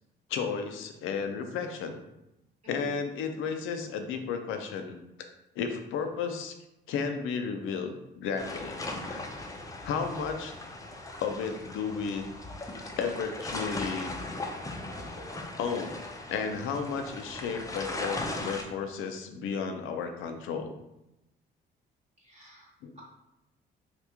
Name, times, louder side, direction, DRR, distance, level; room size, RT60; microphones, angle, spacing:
voice 1, 0.3-2.0 2.7-5.3 5.6-6.5 6.9-9.3 9.8-10.5 11.2-12.2 13.0-14.1 15.6-16.0 16.3-20.7 22.8-22.9, left 6 dB, 85° left, 6 dB, 0.5 m, -33 dB
voice 2, 2.6-2.9 22.2-23.0, equal, 30° right, -4 dB, 0.9 m, -54 dB
sound 1, 8.4-18.6, left 2 dB, 15° left, 0.5 m, -38 dB
2.9 x 2.4 x 3.5 m, 0.92 s
cardioid pair, 90°, 20 cm